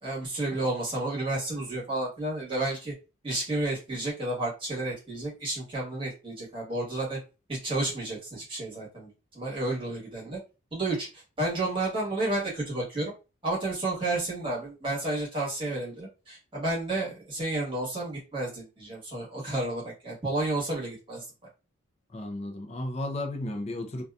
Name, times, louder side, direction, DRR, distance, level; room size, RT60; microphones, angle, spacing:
voice 1, 0.0-2.9 3.2-7.2 7.5-10.4 10.7-13.1 13.4-21.2, right 2 dB, 25° right, 1.2 m, -31 dB
voice 2, 22.1-24.0, left 1 dB, 30° left, 0.4 m, -34 dB
2.6 x 2.2 x 2.3 m
head